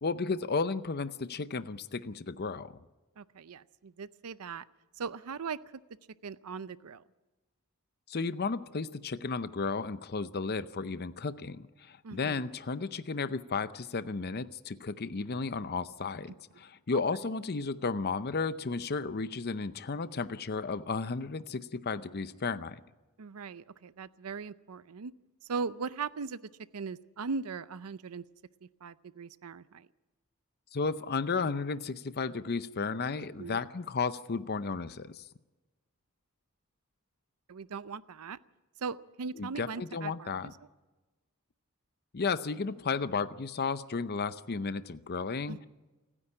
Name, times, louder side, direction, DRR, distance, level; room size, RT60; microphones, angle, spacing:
voice 1, 0.0-2.7 8.1-22.8 30.7-35.2 39.4-40.5 42.1-45.7, left 4 dB, 45° left, 13 dB, 0.6 m, -33 dB
voice 2, 3.2-4.6 4.9-5.6 6.2-7.0 12.0-12.4 23.2-25.1 25.4-26.4 26.7-28.2 28.6-29.9 33.4-33.6 37.5-38.4 38.8-40.3 45.5-45.6, right 5 dB, 85° right, 15 dB, 0.6 m, -39 dB
29.0 x 10.0 x 9.8 m, 1.2 s
head